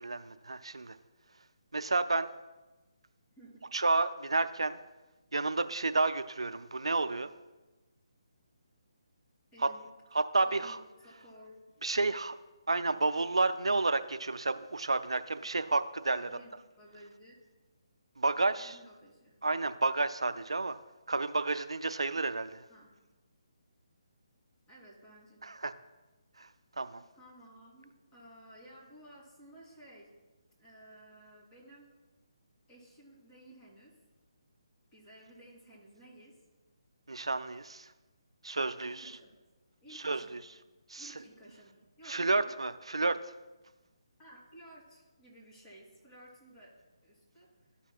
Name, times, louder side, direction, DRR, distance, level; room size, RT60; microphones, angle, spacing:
voice 1, 0.0-1.0 1.7-2.3 3.7-4.8 5.3-7.3 10.1-10.8 11.8-12.4 12.7-16.3 18.2-18.8 19.4-20.8 21.1-22.6 25.4-25.7 26.4-26.5 26.8-27.0 37.1-37.9 38.4-39.2 39.9-40.4 40.9-41.1 42.1-43.2, right 3 dB, 85° right, 11 dB, 0.4 m, -31 dB
voice 2, 3.4-3.7 9.5-9.9 10.4-11.6 16.1-17.4 18.5-19.3 22.7-22.9 24.7-25.5 27.1-30.1 30.6-31.9 32.7-33.9 34.9-36.3 38.8-39.3 39.8-40.4 41.0-42.6 44.2-47.7, right 1 dB, 20° left, -6 dB, 2.7 m, -55 dB
13.0 x 5.7 x 2.3 m, 1.1 s
figure-of-eight pair, 150°, 3 cm